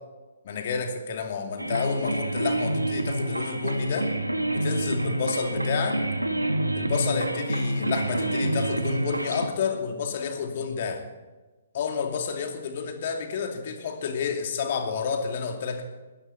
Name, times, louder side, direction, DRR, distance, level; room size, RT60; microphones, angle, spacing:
voice 1, 0.4-4.1 4.5-6.0 6.7-11.0 11.7-15.8, left 6 dB, 45° left, 4 dB, 2.5 m, -30 dB
sound 1, 1.6-9.5, right 1 dB, 85° right, 1.7 m, -27 dB
19.5 x 16.0 x 4.3 m, 1.2 s
figure-of-eight pair, 125°, 0 cm